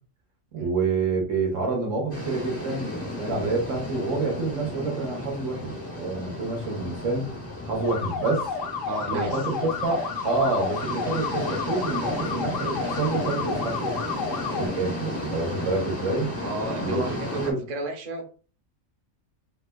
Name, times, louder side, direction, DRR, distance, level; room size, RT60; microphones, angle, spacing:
voice 1, 0.5-7.2 7.7-8.5 9.1-14.0 14.6-16.3 16.8-17.0 17.3-17.6, right 3 dB, 85° right, 0 dB, 1.5 m, -28 dB
sound 1, 2.1-17.5, left 1 dB, 15° left, 0.6 m, -34 dB
sound 2, 7.8-14.7, left 5 dB, 85° left, 1.1 m, -31 dB
voice 2, 8.8-9.4 10.8-10.9 14.9-15.0 16.4-18.2, right 2 dB, 40° right, 4 dB, 0.7 m, -33 dB
4.9 x 2.2 x 2.3 m, 0.38 s
omnidirectional pair, 1.3 m